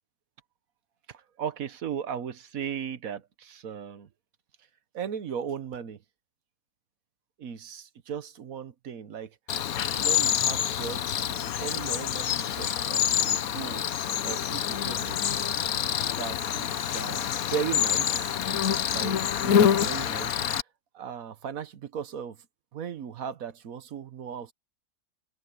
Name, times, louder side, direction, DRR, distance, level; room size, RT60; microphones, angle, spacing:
voice 1, 1.1-4.1 4.9-6.0 7.4-9.6 9.8-13.9 14.2-15.6 16.1-18.4 18.9-20.5 20.9-22.4 22.7-24.5, right 8 dB, 70° right, 1.4 m, -37 dB
Cricket, 9.5-20.6, left 9 dB, 75° left, 1.3 m, -27 dB
omnidirectional pair, 1.5 m